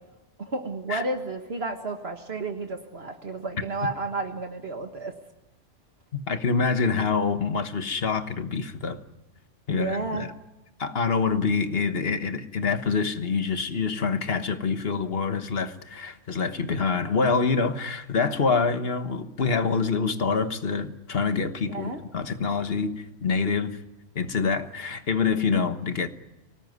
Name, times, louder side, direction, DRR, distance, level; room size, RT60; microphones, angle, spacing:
voice 1, 0.4-5.1 9.7-10.3 21.7-22.0, right 3 dB, 60° right, 5 dB, 1.8 m, -32 dB
voice 2, 6.1-9.0 9.7-10.3 10.8-23.8 24.1-26.1, left 5 dB, 55° left, 9 dB, 1.5 m, -26 dB
24.0 x 18.5 x 9.5 m, 1.0 s
omnidirectional pair, 1.2 m